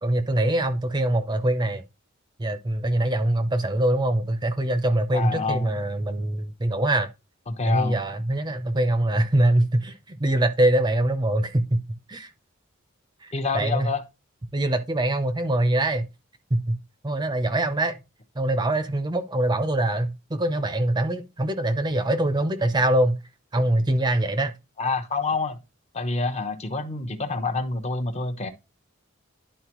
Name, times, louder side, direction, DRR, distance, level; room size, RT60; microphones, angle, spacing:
voice 1, 0.0-1.8 2.4-7.1 7.7-12.3 13.2-13.9 14.5-16.1 16.5-16.8 17.0-18.0 18.4-23.2 23.5-24.5, right 1 dB, 20° right, 0.6 m, -23 dB
voice 2, 5.1-5.7 7.5-8.0 13.3-14.0 24.8-25.6 25.9-28.5, left 3 dB, 30° left, 0.9 m, -27 dB
11.0 x 4.3 x 3.0 m
head